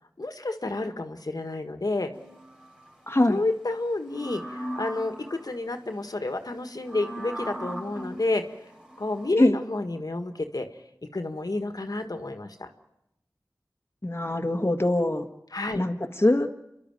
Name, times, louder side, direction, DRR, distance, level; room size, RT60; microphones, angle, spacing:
voice 1, 0.2-2.1 3.3-8.5 9.0-10.7 11.1-12.7 15.5-15.8, left 2 dB, 65° left, 7 dB, 1.7 m, -30 dB
sound 1, 2.1-2.9 4.0-5.5 6.8-9.3, right 1 dB, 10° right, 4.9 m, -38 dB
voice 2, 3.1-3.4 9.4-9.6 14.0-15.3 15.7-16.6, left 1 dB, 35° left, 4 dB, 1.6 m, -23 dB
29.0 x 12.0 x 9.1 m, 0.84 s
wide cardioid pair, 40°, 7 cm